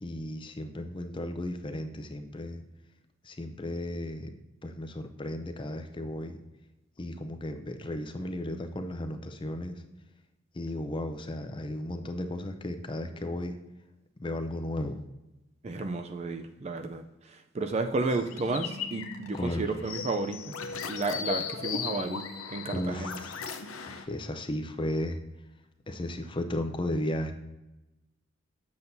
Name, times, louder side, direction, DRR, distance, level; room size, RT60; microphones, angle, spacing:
voice 1, 0.0-2.6 3.2-4.3 4.6-6.4 7.0-9.8 10.5-13.6 14.2-15.0 19.3-19.7 22.7-23.5 23.8-25.2 25.9-27.3, left 1 dB, 25° left, 7 dB, 0.5 m, -34 dB
voice 2, 15.6-20.5 20.9-22.2 22.5-23.1, right 3 dB, 30° right, 7 dB, 0.4 m, -32 dB
sound 1, 18.1-24.1, left 6 dB, 85° left, 0.7 m, -37 dB
7.9 x 7.0 x 2.7 m, 1.0 s
head